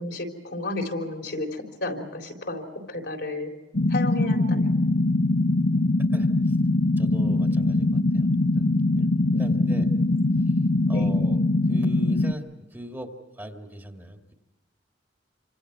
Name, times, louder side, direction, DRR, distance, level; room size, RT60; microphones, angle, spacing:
voice 1, 0.0-3.5 3.9-4.7 9.3-10.0 10.9-11.1, left 2 dB, 65° left, 2 dB, 3.9 m, -33 dB
sound 1, 3.7-12.3, left 2 dB, 85° left, 1.1 m, -22 dB
voice 2, 6.1-6.6 7.0-8.3 8.6-8.7 9.0-9.1 9.4-9.9 10.9-11.4 11.7-12.4 12.7-14.3, right 1 dB, 10° right, 3 dB, 2.1 m, -40 dB
28.5 x 26.0 x 4.6 m, 1.1 s
head